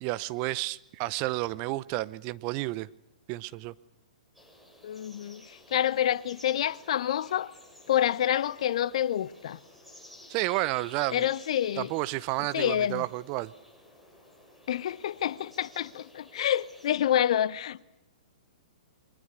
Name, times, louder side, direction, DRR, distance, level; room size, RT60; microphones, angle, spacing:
voice 1, 0.0-2.9 3.3-3.7 10.3-11.3 11.8-13.5, right 18 dB, 35° right, 0.8 m, -31 dB
sound 1, 4.3-16.9, left 1 dB, ahead, 6.8 m, -54 dB
voice 2, 4.8-5.4 5.7-7.5 7.9-9.6 11.1-11.9 12.5-13.0 14.7-17.8, left 11 dB, 50° left, 0.9 m, -27 dB
28.0 x 23.5 x 6.6 m
figure-of-eight pair, 115°, 4 cm